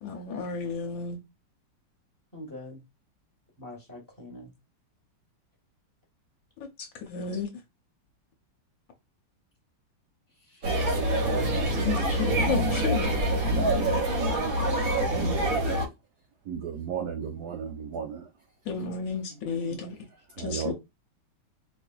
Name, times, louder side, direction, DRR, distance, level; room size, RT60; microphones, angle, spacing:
voice 1, 0.0-1.2 7.0-7.5 11.8-13.1 18.7-20.0 20.4-20.7, left 5 dB, 65° left, 1.4 m, -32 dB
voice 2, 2.3-2.8 3.6-4.5 10.5-11.0 11.6-11.8 19.3-19.8, left 1 dB, 15° left, 0.9 m, -45 dB
sound 1, 10.6-15.8, right 1 dB, 55° right, 1.1 m, -25 dB
voice 3, 16.5-18.2 20.4-20.7, right 7 dB, 75° right, 0.9 m, -34 dB
4.5 x 2.6 x 2.3 m
omnidirectional pair, 2.4 m